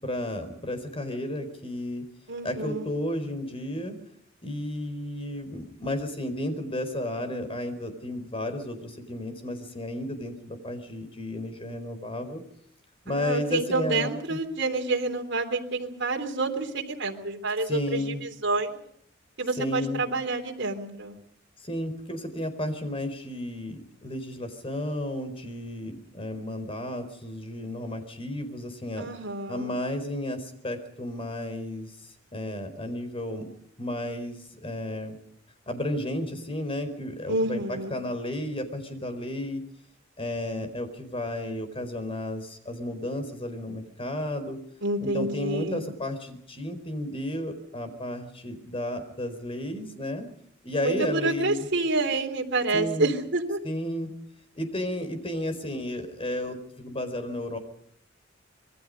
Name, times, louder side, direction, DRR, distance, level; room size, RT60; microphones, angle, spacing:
voice 1, 0.0-2.1 2.4-4.0 4.4-12.4 13.0-14.4 17.6-18.2 19.6-20.1 21.6-29.1 29.5-31.9 32.3-33.5 33.8-35.2 35.7-39.6 40.2-44.6 45.0-50.3 50.6-51.7 52.7-53.1 53.6-54.1 54.5-57.6, left 1 dB, 30° left, 8 dB, 4.5 m, -33 dB
voice 2, 2.3-2.9 13.1-18.8 19.4-21.1 29.0-29.7 37.3-38.0 44.8-45.8 50.8-53.6, right 2 dB, 65° right, 2 dB, 3.4 m, -28 dB
26.5 x 22.0 x 5.3 m, 0.69 s
head